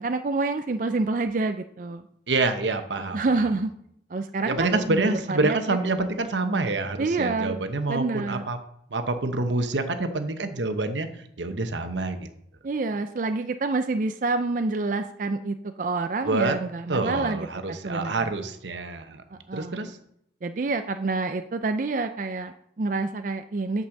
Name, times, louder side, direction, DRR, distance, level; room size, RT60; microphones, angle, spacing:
voice 1, 0.0-2.0 3.0-3.7 4.1-5.8 7.0-7.6 7.9-8.4 12.6-18.3 19.3-19.9 20.4-23.9, right 3 dB, 45° right, 8 dB, 0.4 m, -28 dB
voice 2, 2.3-3.5 4.4-8.6 8.9-11.1 11.4-12.3 16.2-16.6 16.9-19.2 19.5-20.0, right 3 dB, 90° right, 8 dB, 1.1 m, -27 dB
8.8 x 5.4 x 6.5 m, 0.72 s
head